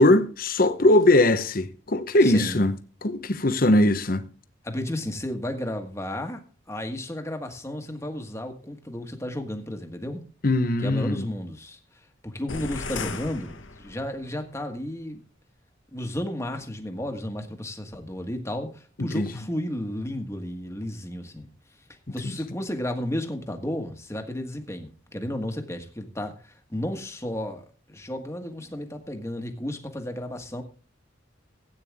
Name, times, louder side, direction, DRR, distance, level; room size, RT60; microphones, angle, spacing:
voice 1, 0.0-2.7 3.0-4.3 10.4-11.3 19.0-19.3, left 1 dB, 50° left, 0.9 m, -20 dB
voice 2, 2.2-2.6 4.6-6.4 6.7-10.2 10.8-11.8 12.2-15.2 15.9-21.5 22.1-30.6, left 1 dB, 15° left, 1.5 m, -33 dB
sound 1, 12.5-14.3, left 4 dB, 85° left, 1.3 m, -35 dB
16.0 x 9.0 x 3.5 m
head